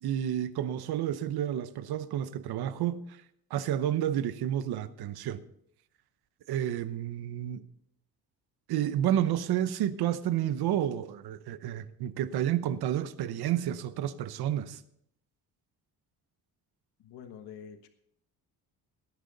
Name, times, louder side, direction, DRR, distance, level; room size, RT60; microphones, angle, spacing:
voice 1, 0.0-3.2 3.5-5.4 6.5-7.7 8.7-14.8, right 11 dB, 80° right, 0.9 m, -30 dB
voice 2, 17.0-17.9, left 8 dB, 85° left, 1.3 m, -46 dB
18.0 x 10.5 x 4.0 m
cardioid pair, 170°, 38 cm